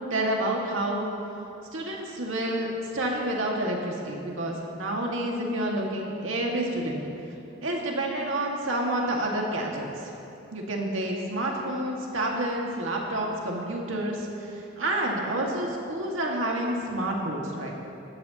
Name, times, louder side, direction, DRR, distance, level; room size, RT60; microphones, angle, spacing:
voice 1, 0.1-1.1 1.7-7.0 7.6-10.1 10.5-17.7, right 1 dB, 85° right, -1 dB, 1.9 m, -29 dB
16.5 x 13.5 x 2.9 m, 2.7 s
head